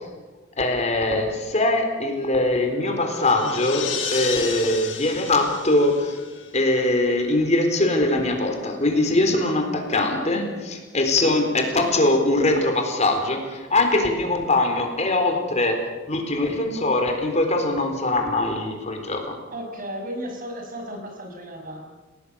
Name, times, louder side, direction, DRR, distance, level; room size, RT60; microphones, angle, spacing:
voice 1, 0.6-6.2 6.5-15.8 16.1-19.4, left 2 dB, 35° left, 4 dB, 4.0 m, -22 dB
sound 1, 2.6-7.0, left 5 dB, 80° left, 5.1 m, -33 dB
voice 2, 19.5-21.8, equal, 45° right, 3 dB, 5.9 m, -34 dB
30.0 x 18.0 x 6.9 m, 1.3 s
head